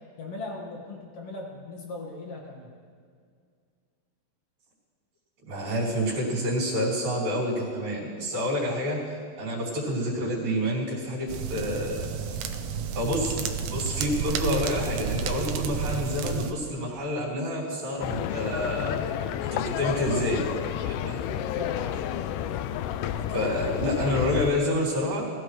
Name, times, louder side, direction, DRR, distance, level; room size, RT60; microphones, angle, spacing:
voice 1, 0.2-2.7 21.5-22.1, left 2 dB, 50° left, -1 dB, 2.3 m, -38 dB
voice 2, 5.4-12.0 12.9-19.0 19.4-20.5 20.8-21.2 23.3-25.2, equal, 70° right, -9 dB, 4.5 m, -28 dB
sound 1, 11.3-16.5, right 6 dB, 85° right, 1.5 m, -31 dB
sound 2, 18.0-24.5, left 10 dB, 85° left, 1.8 m, -30 dB
20.5 x 14.0 x 3.2 m, 2.1 s
omnidirectional pair, 4.2 m